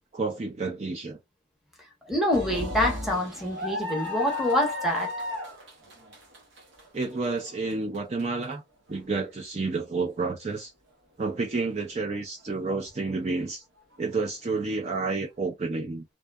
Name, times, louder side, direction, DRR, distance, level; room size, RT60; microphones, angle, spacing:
voice 1, 0.1-1.2 6.9-8.6 8.9-10.7 11.2-13.6 14.0-16.0, right 3 dB, 35° right, 0.4 m, -30 dB
voice 2, 2.0-5.1, left 1 dB, ahead, 0.7 m, -26 dB
sound 1, 2.3-8.4 8.9-9.0 10.2-10.4, left 2 dB, 80° right, 0.8 m, -34 dB
2.6 x 2.2 x 2.2 m
head